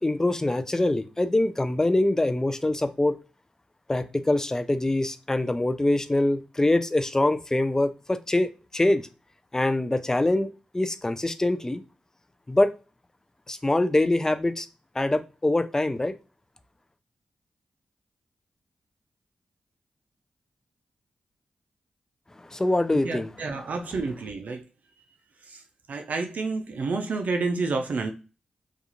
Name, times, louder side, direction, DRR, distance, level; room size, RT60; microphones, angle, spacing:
voice 1, 0.0-3.2 3.9-9.1 9.5-11.8 12.5-12.7 13.5-14.7 14.9-16.1 22.4-23.3, left 1 dB, 20° left, 0.4 m, -24 dB
voice 2, 22.9-24.6 25.5-25.6 25.9-28.1, right 3 dB, 70° right, 0.4 m, -29 dB
2.4 x 2.3 x 2.9 m
supercardioid pair, 45°, 3 cm